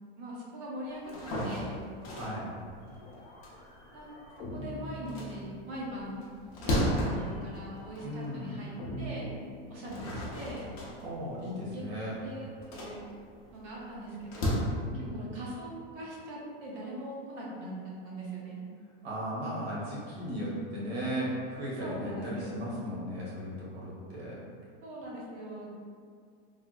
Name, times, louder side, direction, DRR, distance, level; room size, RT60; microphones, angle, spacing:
voice 1, 0.2-1.1 1.4-1.8 3.9-4.2 4.5-6.3 6.6-9.3 9.7-10.8 11.7-11.8 12.2-13.1 13.5-14.7 14.9-18.6 21.8-22.6 24.8-25.7, right 1 dB, 30° right, -5 dB, 0.5 m, -41 dB
sound 1, 1.0-4.5 4.9-8.4 8.9-9.0 9.6-14.6, equal, 35° left, 0.6 m, -35 dB
voice 2, 2.1-2.5 8.0-8.5 11.0-12.1 14.9-15.2 19.0-24.4, equal, 80° right, -6 dB, 1.3 m, -36 dB
sound 2, 2.8-6.1 7.2-10.4, equal, 75° left, 0.8 m, -44 dB
3.3 x 2.6 x 2.2 m, 2.1 s
supercardioid pair, 175°, 31 cm